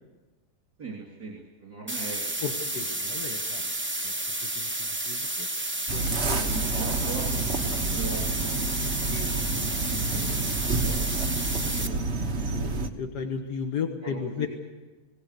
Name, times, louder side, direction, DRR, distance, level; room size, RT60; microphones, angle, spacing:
voice 1, 0.8-2.4 3.1-3.7 6.3-8.9 9.8-11.0 14.0-14.5, right 4 dB, 70° right, -2 dB, 3.9 m, -40 dB
sound 1, 1.9-11.9, right 1 dB, 10° right, 0.8 m, -31 dB
voice 2, 2.4-3.7 4.0-4.1 4.6-5.5 5.9-6.4 9.1-10.4 11.5-14.5, left 6 dB, 85° left, 4 dB, 2.0 m, -36 dB
sound 2, 5.9-12.9, right 3 dB, 45° right, 1.4 m, -29 dB
22.0 x 18.0 x 8.4 m, 1.2 s
omnidirectional pair, 1.7 m